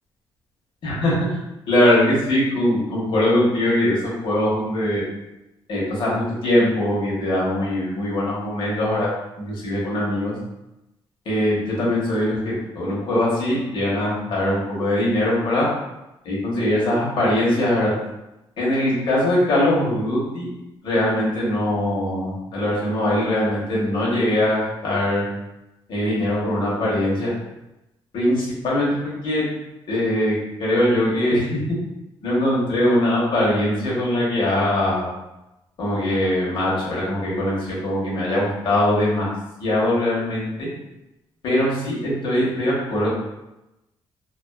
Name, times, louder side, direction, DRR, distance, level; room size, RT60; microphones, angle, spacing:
voice 1, 0.8-1.1 1.7-4.0 4.2-5.0 5.7-9.1 9.4-10.3 11.3-15.7 16.2-17.9 18.6-20.5 20.8-25.2 25.9-27.3 28.1-29.4 29.9-31.6 32.2-35.1 35.8-39.3 39.6-40.7 41.4-43.1, left 1 dB, 60° left, -6 dB, 0.9 m, -21 dB
2.4 x 2.3 x 2.3 m, 0.94 s
cardioid pair, 155°, 9 cm